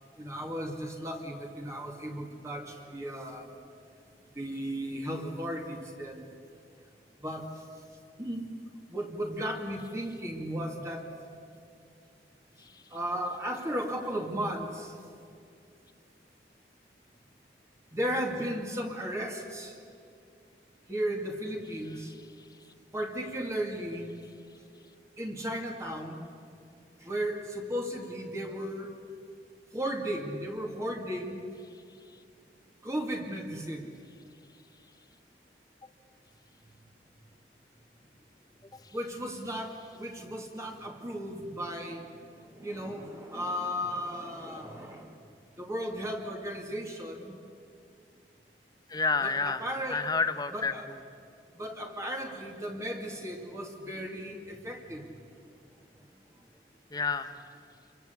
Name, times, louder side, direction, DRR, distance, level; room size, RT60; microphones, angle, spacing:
voice 1, 0.2-3.6 4.3-6.3 7.2-7.6 8.2-8.4 8.9-11.1 12.9-15.0 17.9-19.8 20.9-22.1 22.9-24.1 25.2-26.2 27.0-29.0 29.7-31.4 32.8-33.9 38.9-45.2 45.6-47.3 49.2-50.1 50.5-50.8 51.5-55.1, equal, 15° right, 1 dB, 2.4 m, -35 dB
voice 2, 48.9-49.6 49.9-50.7 56.9-57.3, left 4 dB, 20° left, 9 dB, 1.2 m, -29 dB
28.5 x 23.5 x 8.4 m, 2.4 s
head